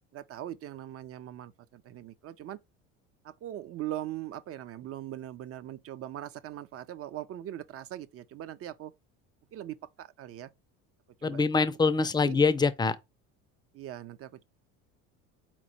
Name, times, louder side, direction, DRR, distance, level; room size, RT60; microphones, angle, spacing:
voice 1, 0.1-2.6 3.2-8.9 9.5-10.5 11.2-11.4 12.2-12.4 13.7-14.4, right 12 dB, 40° right, 0.5 m, -40 dB
voice 2, 11.2-13.0, left 4 dB, 10° left, 0.4 m, -24 dB
4.2 x 3.0 x 4.1 m
supercardioid pair, 90°, 36 cm